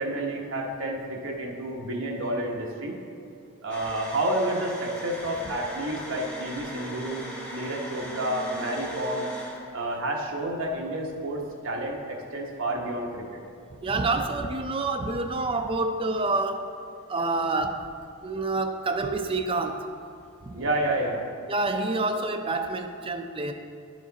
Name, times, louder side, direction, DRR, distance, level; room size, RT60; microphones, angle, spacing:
voice 1, 0.0-3.0 3.6-7.2 7.5-9.3 9.7-13.4 20.5-21.2, right 1 dB, 60° right, -1 dB, 1.1 m, -30 dB
sound 1, 3.7-11.3 11.8-11.9 13.4-14.0 15.0-19.2 19.4-19.7 20.0-21.2, equal, 5° left, 0.9 m, -40 dB
voice 2, 13.8-16.7 17.1-17.9 18.2-19.8 20.5-20.6 21.5-23.5, right 3 dB, 25° right, 5 dB, 0.4 m, -27 dB
11.0 x 5.0 x 4.0 m, 2.6 s
head